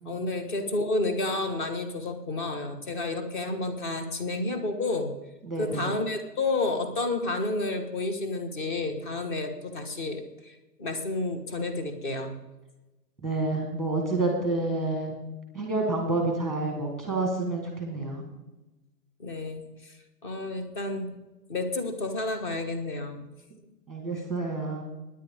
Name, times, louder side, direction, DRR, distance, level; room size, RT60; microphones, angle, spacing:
voice 1, 0.1-5.1 5.6-12.4 19.2-19.9 20.2-21.1 21.5-23.2, left 2 dB, 30° left, 6 dB, 1.7 m, -30 dB
voice 2, 5.4-5.9 13.2-15.2 15.5-18.3 23.9-24.8, right 2 dB, ahead, 1 dB, 1.5 m, -29 dB
23.5 x 10.0 x 3.7 m, 1.1 s
hypercardioid pair, 170°, 48 cm